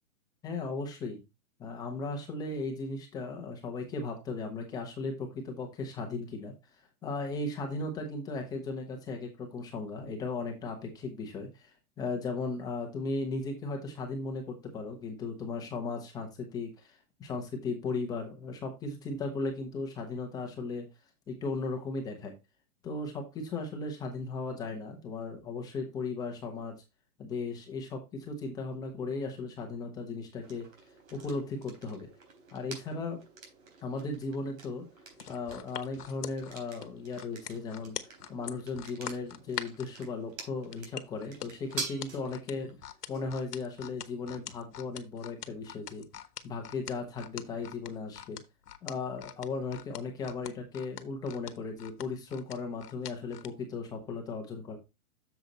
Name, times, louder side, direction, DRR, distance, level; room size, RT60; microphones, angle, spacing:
voice 1, 0.4-1.2 1.6-6.5 7.0-20.9 21.3-22.3 22.8-26.7 27.2-30.7 31.1-32.1 32.5-33.2 33.8-34.8 35.3-38.0 38.3-42.7 43.1-46.1 46.4-48.4 48.8-54.8, left 3 dB, 10° left, 2 dB, 1.0 m, -36 dB
sound 1, 30.4-48.2, right 4 dB, 65° right, 4.0 m, -48 dB
sound 2, 35.1-39.9 40.7-53.5 54.0-54.1, left 9 dB, 85° left, 1.2 m, -43 dB
8.1 x 7.0 x 3.0 m, 0.24 s
hypercardioid pair, 165°, 45 cm